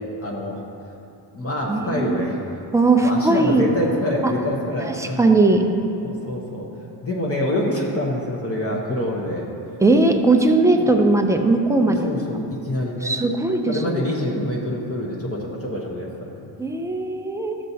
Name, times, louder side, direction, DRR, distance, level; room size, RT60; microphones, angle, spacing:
voice 1, 0.2-0.6 1.3-2.6 3.0-5.3 6.0-6.7 7.0-9.5 10.8-10.9 11.8-13.2 13.7-16.4, left 1 dB, 30° left, -3 dB, 0.9 m, -26 dB
voice 2, 1.7-2.3 2.7-3.6 4.2-4.3 5.0-5.6 9.8-12.1 13.0-14.0 16.6-17.6, right 2 dB, 5° right, 4 dB, 0.4 m, -18 dB
13.0 x 7.5 x 2.7 m, 2.7 s
cardioid pair, 145°, 46 cm